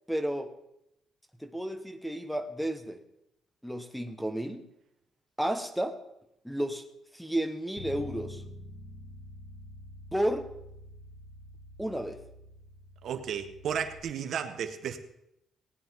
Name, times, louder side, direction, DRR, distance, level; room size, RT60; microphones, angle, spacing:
voice 1, 0.1-0.5 1.4-3.0 3.6-4.6 5.4-6.0 6.4-6.8 7.1-8.4 10.1-10.5 11.8-12.2, right 1 dB, ahead, 8 dB, 1.1 m, -32 dB
Bass guitar, 7.8-14.0, left 1 dB, 80° left, 1.6 m, -47 dB
voice 2, 13.0-15.0, right 8 dB, 65° right, 7 dB, 1.2 m, -33 dB
18.5 x 9.6 x 3.6 m, 0.82 s
cardioid pair, 115°, 0 cm